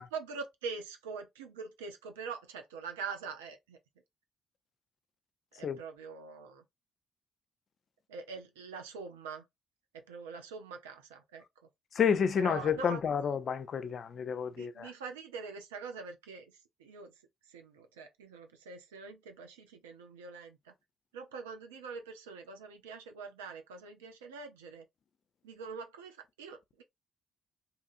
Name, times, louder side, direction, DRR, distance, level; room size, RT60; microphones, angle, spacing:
voice 1, 0.1-3.8 5.6-6.6 8.1-9.4 9.9-11.4 12.4-13.0 14.6-16.5 16.8-17.1 17.5-20.7 21.1-24.8 25.4-26.8, right 5 dB, 90° right, 0.5 m, -44 dB
voice 2, 12.0-14.9, left 7 dB, 55° left, 0.4 m, -30 dB
2.8 x 2.5 x 2.4 m
hypercardioid pair, 50°, 0 cm